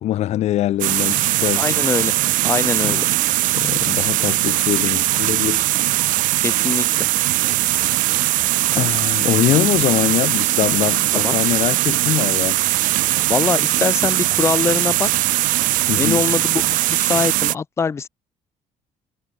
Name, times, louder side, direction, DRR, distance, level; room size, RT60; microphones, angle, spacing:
voice 1, 0.0-1.8 2.8-3.1 3.5-5.6 8.7-12.6 15.9-16.2, left 13 dB, 55° left, 1.4 m, -22 dB
sound 1, 0.8-17.5, right 17 dB, 85° right, 2.5 m, -20 dB
voice 2, 1.6-2.1 2.4-3.1 6.4-7.1 11.1-11.3 13.3-15.1 16.0-18.1, left 5 dB, 20° left, 1.0 m, -23 dB
cardioid pair, 175°, 13 cm